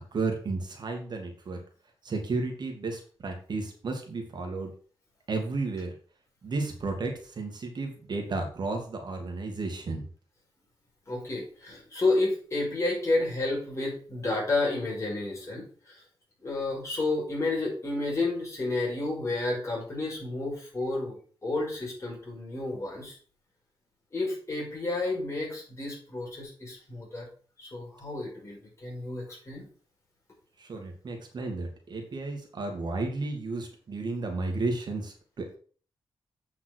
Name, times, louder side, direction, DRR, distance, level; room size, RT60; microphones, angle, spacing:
voice 1, 0.1-1.6 2.0-4.7 5.3-6.0 6.4-10.1 30.6-35.5, right 3 dB, 55° right, 3 dB, 2.3 m, -33 dB
voice 2, 11.1-16.0 16.4-23.2 24.1-27.3 27.6-29.7, left 2 dB, 35° left, -2 dB, 5.7 m, -31 dB
8.2 x 5.8 x 6.2 m, 0.42 s
wide cardioid pair, 130°, 9 cm